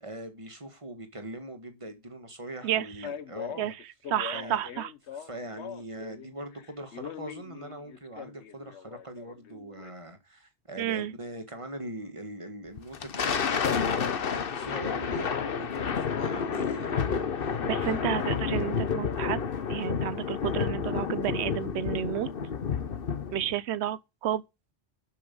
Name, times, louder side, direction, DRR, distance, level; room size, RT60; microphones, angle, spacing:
voice 1, 0.0-3.7 4.3-4.6 5.1-18.1, right 1 dB, 30° right, 1.8 m, -42 dB
Male speech man speaking, 3.0-6.3 6.5-9.9, left 8 dB, 75° left, 1.2 m, -42 dB
voice 2, 4.1-4.9 10.8-11.1 17.6-22.3 23.3-24.4, right 11 dB, 75° right, 1.0 m, -31 dB
Thunder, 12.8-23.5, left 6 dB, 55° left, 1.1 m, -30 dB
12.0 x 5.5 x 5.4 m
omnidirectional pair, 1.2 m